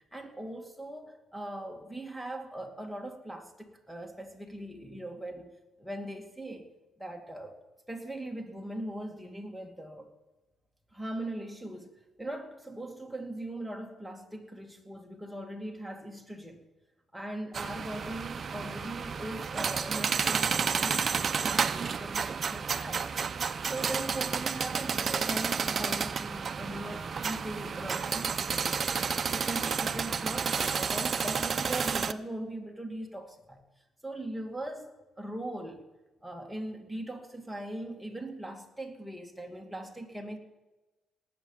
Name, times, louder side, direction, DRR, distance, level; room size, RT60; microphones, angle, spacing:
voice 1, 0.1-6.7 7.0-7.6 7.9-10.1 10.9-11.9 12.2-16.6 17.1-23.1 23.6-28.9 29.3-33.6 34.0-35.9 36.2-40.4, right 1 dB, ahead, 2 dB, 2.2 m, -40 dB
sound 1, 17.5-32.1, right 6 dB, 45° right, 0.7 m, -31 dB
18.5 x 8.6 x 7.2 m, 1.1 s
cardioid pair, 90°, 0 cm